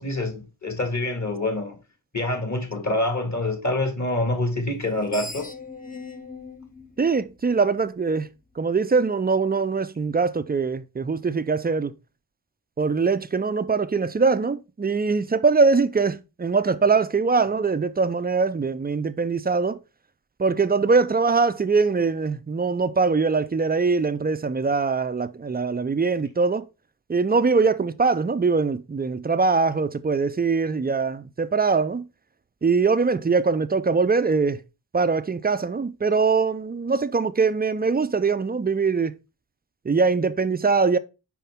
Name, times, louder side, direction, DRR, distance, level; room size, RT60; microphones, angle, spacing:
voice 1, 0.0-1.8 2.1-5.5, left 2 dB, 35° left, 2.1 m, -26 dB
Screech, 4.8-8.0, left 3 dB, 20° left, 0.8 m, -40 dB
voice 2, 7.0-8.3 8.6-11.9 12.8-19.8 20.4-26.6 27.1-32.1 32.6-34.6 34.9-39.1 39.9-41.0, right 4 dB, 20° right, 0.5 m, -22 dB
5.7 x 4.6 x 3.5 m
cardioid pair, 45°, 46 cm